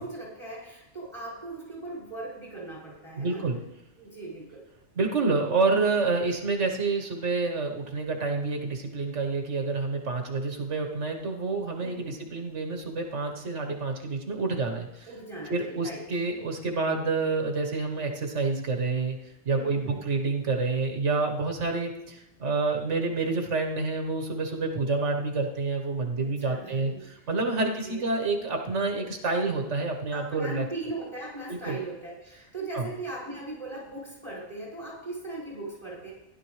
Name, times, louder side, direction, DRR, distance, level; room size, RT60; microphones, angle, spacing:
voice 1, 0.0-3.4 4.0-4.6 11.8-12.2 15.1-16.0 19.5-20.0 26.2-27.2 27.6-28.1 30.1-36.1, right 2 dB, 25° left, -6 dB, 5.2 m, -39 dB
voice 2, 3.2-3.6 4.9-15.1 15.5-19.2 19.4-30.6 31.5-31.8 32.7-32.9, right 3 dB, 85° right, 3 dB, 1.6 m, -28 dB
15.5 x 11.0 x 3.2 m, 0.91 s
omnidirectional pair, 1.2 m